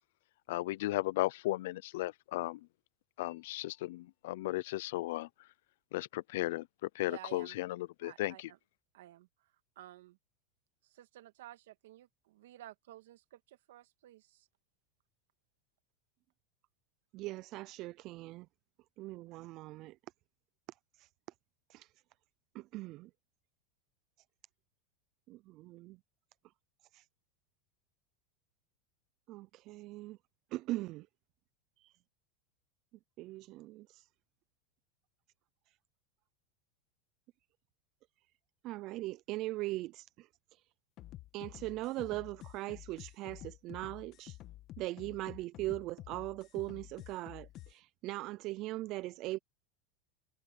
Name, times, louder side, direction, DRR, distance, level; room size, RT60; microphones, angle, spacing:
voice 1, 0.5-2.6 3.2-5.3 5.9-6.7 6.9-8.5, left 17 dB, 75° left, 0.7 m, -35 dB
voice 2, 7.1-7.6 8.0-8.6 8.9-9.3 9.8-10.2 10.9-14.5, right 15 dB, 80° right, 2.3 m, -53 dB
voice 3, 17.1-18.5 19.0-20.0 21.0-21.1 21.7-21.9 22.5-23.1 25.3-26.0 26.9-27.1 29.3-30.2 30.5-31.1 31.8-32.0 33.2-34.1 35.7-35.8 38.6-40.7 41.3-44.4 44.8-49.4, right 18 dB, 45° right, 0.5 m, -40 dB
sound 1, 41.0-47.7, left 15 dB, 40° left, 1.5 m, -50 dB
supercardioid pair, 125°, 0 cm